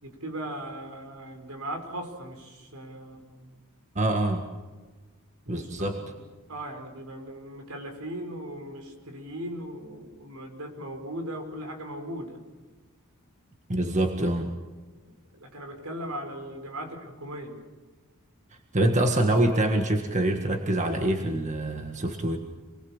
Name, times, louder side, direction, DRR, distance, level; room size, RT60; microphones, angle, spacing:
voice 1, 0.0-3.5 5.4-6.1 6.5-12.4 15.0-17.6, right 1 dB, 75° right, 5 dB, 5.0 m, -38 dB
voice 2, 3.9-4.5 5.5-6.0 13.7-14.5 18.7-22.4, right 1 dB, 35° right, 5 dB, 1.7 m, -25 dB
27.0 x 21.0 x 7.3 m, 1.3 s
head